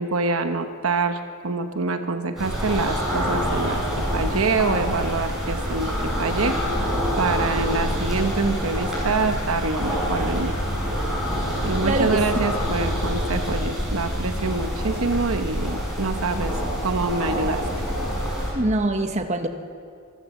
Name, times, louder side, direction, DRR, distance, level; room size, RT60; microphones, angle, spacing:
voice 1, 0.0-3.8 4.1-6.6 7.2-10.5 11.6-16.6 16.8-17.6, right 3 dB, 65° right, 7 dB, 1.1 m, -25 dB
sound 1, 2.4-18.5, equal, ahead, 7.8 m, -26 dB
voice 2, 11.8-12.2 18.5-19.5, right 1 dB, 30° right, 6 dB, 1.2 m, -23 dB
26.0 x 14.5 x 7.2 m, 2.3 s
head